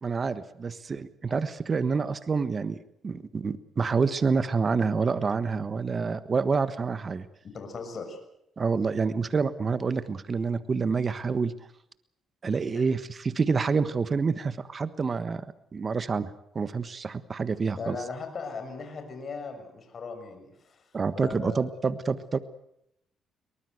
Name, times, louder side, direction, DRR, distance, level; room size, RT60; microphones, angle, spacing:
voice 1, 0.0-2.8 3.0-7.3 8.6-11.5 12.4-15.4 15.7-18.0 20.9-22.4, right 5 dB, 35° right, 13 dB, 1.4 m, -27 dB
voice 2, 7.4-8.2 12.7-12.9 17.8-20.8 21.1-21.7, left 4 dB, 45° left, 6 dB, 6.5 m, -38 dB
23.0 x 19.5 x 8.1 m, 0.77 s
cardioid pair, 90°, 0 cm